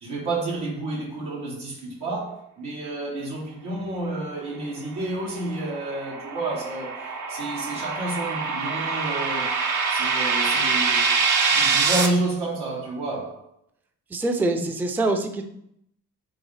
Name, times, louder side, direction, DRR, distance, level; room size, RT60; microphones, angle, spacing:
voice 1, 0.0-9.6 9.9-13.5, right 2 dB, 85° right, 1.1 m, -30 dB
sound 1, 5.2-12.1, right 5 dB, 55° right, 0.6 m, -24 dB
voice 2, 14.1-15.4, right 2 dB, 5° right, 0.4 m, -24 dB
3.8 x 2.0 x 3.2 m
supercardioid pair, 45°, 38 cm